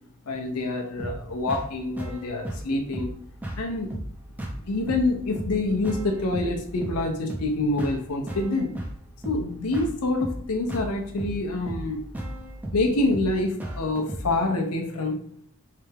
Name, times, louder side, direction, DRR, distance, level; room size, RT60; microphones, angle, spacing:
voice 1, 0.3-3.1 3.6-3.9 4.7-8.7 9.2-12.0 12.7-15.2, left 2 dB, 85° left, 3 dB, 0.6 m, -26 dB
sound 1, 1.0-14.4, right 1 dB, 5° right, 0.5 m, -36 dB
3.3 x 3.3 x 3.3 m, 0.64 s
head